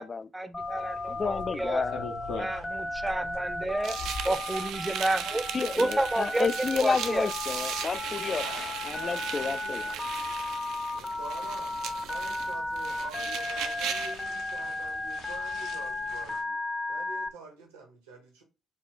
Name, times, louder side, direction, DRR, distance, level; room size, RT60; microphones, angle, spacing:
voice 1, 0.3-1.8 2.4-4.0 4.2-5.4 5.8-6.5 6.8-7.3, right 2 dB, 15° right, 0.6 m, -30 dB
Telephone, 0.5-17.3, left 2 dB, 20° left, 0.7 m, -35 dB
sound 1, 0.6-16.4, left 3 dB, 70° left, 0.9 m, -46 dB
voice 2, 1.1-2.0 5.5-8.4 8.9-9.8, left 5 dB, 40° left, 0.3 m, -30 dB
sound 2, 3.8-14.2, right 9 dB, 65° right, 0.4 m, -37 dB
voice 3, 8.9-9.9 10.9-16.6 16.9-18.4, right 4 dB, 85° right, 1.2 m, -46 dB
4.3 x 2.4 x 3.7 m
hypercardioid pair, 45°, 0 cm